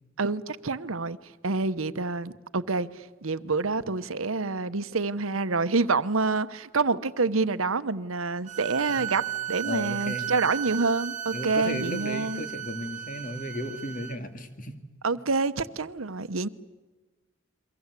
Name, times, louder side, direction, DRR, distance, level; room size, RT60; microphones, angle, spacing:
voice 1, 0.2-12.4 15.0-16.5, right 3 dB, 85° right, 1.0 m, -27 dB
sound 1, 8.5-14.2, right 11 dB, 35° right, 1.1 m, -35 dB
voice 2, 9.6-10.3 11.3-14.8, left 1 dB, 40° left, 2.5 m, -34 dB
29.5 x 23.5 x 8.3 m
head